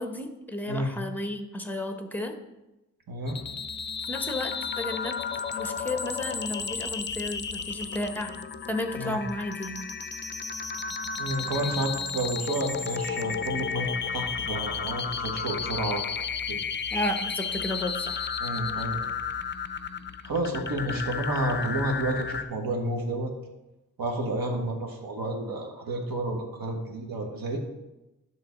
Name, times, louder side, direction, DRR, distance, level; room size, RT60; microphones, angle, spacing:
voice 1, 0.0-2.4 4.1-5.2 5.5-8.3 8.7-9.8 16.9-18.3, left 1 dB, 5° left, 5 dB, 0.9 m, -33 dB
voice 2, 3.1-3.4 8.9-9.2 11.2-16.6 18.4-19.0 20.2-23.3 24.0-27.6, right 1 dB, 90° right, 2 dB, 1.4 m, -30 dB
sound 1, 3.3-22.4, left 6 dB, 35° left, 0.4 m, -33 dB
10.5 x 3.8 x 6.4 m, 0.98 s
wide cardioid pair, 115°, 34 cm